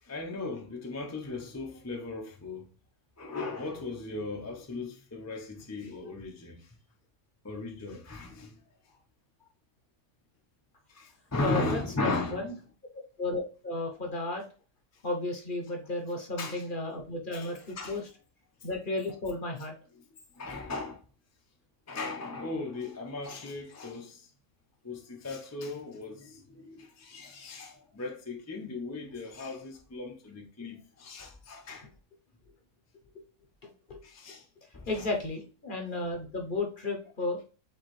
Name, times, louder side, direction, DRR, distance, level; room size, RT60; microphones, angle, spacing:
voice 1, 0.0-2.7 3.2-6.7 7.4-8.6 10.9-12.5 16.4-16.7 17.3-18.0 20.4-21.0 21.9-24.3 24.8-31.9 34.0-34.5 34.7-35.1, left 2 dB, 20° left, 0.5 m, -37 dB
voice 2, 11.4-12.5 13.2-14.4 15.0-18.0 18.6-19.7 33.6-34.0 34.9-37.4, left 2 dB, 40° left, 0.9 m, -34 dB
4.7 x 3.5 x 3.1 m
omnidirectional pair, 1.5 m